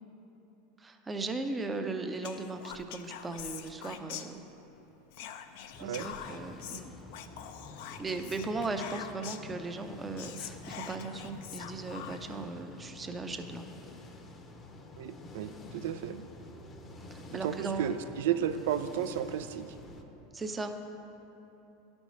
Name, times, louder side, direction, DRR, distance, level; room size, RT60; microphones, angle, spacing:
voice 1, 0.8-4.4 5.8-6.9 8.0-13.6 16.1-16.2 17.1-18.0 20.3-20.8, right 3 dB, 20° right, 6 dB, 0.6 m, -37 dB
Whispering, 2.2-4.7 5.1-9.5 9.9-10.0 10.2-12.4, left 9 dB, 70° left, 0.4 m, -44 dB
sound 1, 5.7-20.0, left 2 dB, 30° left, 0.7 m, -49 dB
voice 2, 15.0-16.2 17.4-19.7, right 9 dB, 75° right, 11 dB, 0.4 m, -33 dB
11.0 x 5.3 x 3.1 m, 3.0 s
hypercardioid pair, 105°, 0 cm